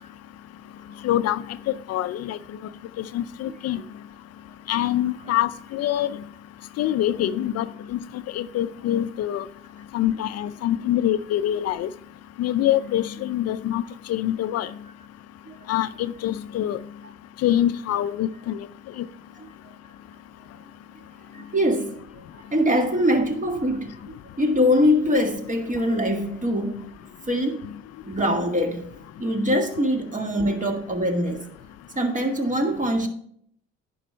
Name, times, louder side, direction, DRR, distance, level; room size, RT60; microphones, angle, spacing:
voice 1, 1.0-1.4 1.9-2.4 3.0-3.8 4.7-6.1 6.8-7.7 7.9-8.0 8.3-9.5 9.9-11.9 12.4-13.8 14.1-14.7 15.7-16.8 17.4-18.6 19.0-19.1, left 12 dB, 60° left, 0.5 m, -24 dB
voice 2, 21.3-23.9 24.4-26.9 27.3-27.6 28.0-28.9 29.2-31.4 32.0-33.1, equal, 25° right, 1.9 m, -23 dB
9.8 x 5.5 x 4.4 m
supercardioid pair, 60°, 29 cm